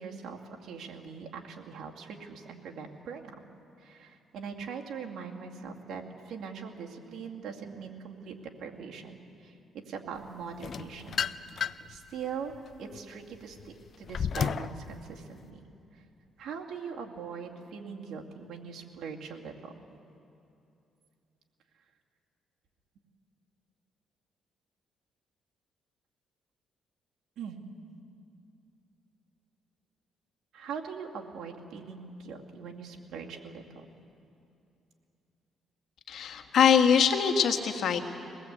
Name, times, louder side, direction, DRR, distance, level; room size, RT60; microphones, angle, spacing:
voice 1, 0.0-3.4 3.8-9.2 9.4-11.3 11.6-15.6 16.4-19.7 27.4-27.6 30.5-33.9, right 6 dB, 75° right, 1 dB, 2.4 m, -41 dB
sound 1, 10.6-12.0 12.5-14.8, left 7 dB, 55° left, 0.5 m, -32 dB
voice 2, 36.1-38.0, left 7 dB, 70° left, 5 dB, 1.8 m, -23 dB
22.5 x 19.0 x 8.4 m, 2.7 s
cardioid pair, 90°, 0 cm